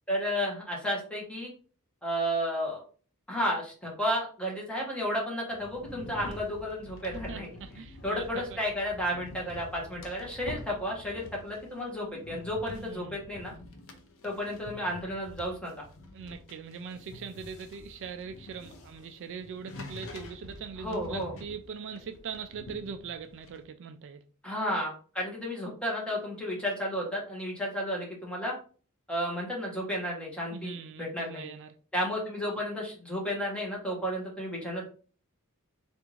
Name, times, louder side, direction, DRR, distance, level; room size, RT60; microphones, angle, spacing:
voice 1, 0.1-1.5 2.0-2.8 3.3-7.5 8.0-13.5 14.2-15.7 20.8-21.3 24.4-28.5 29.1-31.5 31.9-34.9, equal, 5° left, 1.2 m, -32 dB
sound 1, 5.5-23.6, left 2 dB, 65° left, 0.6 m, -47 dB
voice 2, 7.3-8.6 12.6-13.2 16.1-24.2 30.5-31.8, right 6 dB, 55° right, 0.3 m, -41 dB
3.5 x 2.5 x 3.1 m
head